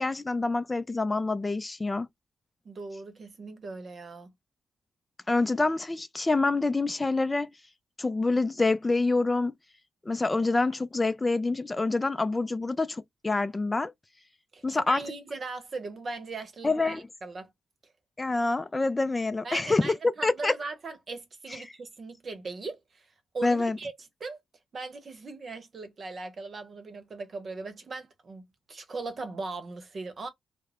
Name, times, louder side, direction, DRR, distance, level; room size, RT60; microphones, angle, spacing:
voice 1, 0.0-2.1 5.3-7.5 8.0-9.5 10.1-13.9 14.6-15.0 16.6-17.0 18.2-19.9 20.2-20.5 21.5-21.6 23.4-23.8, left 3 dB, 25° left, 0.3 m, -26 dB
voice 2, 2.6-4.3 14.5-17.5 17.8-17.9 19.4-23.9 24.2-24.4 24.7-30.3, right 3 dB, 50° right, 0.8 m, -39 dB
2.4 x 2.0 x 3.3 m
supercardioid pair, 65°, 0 cm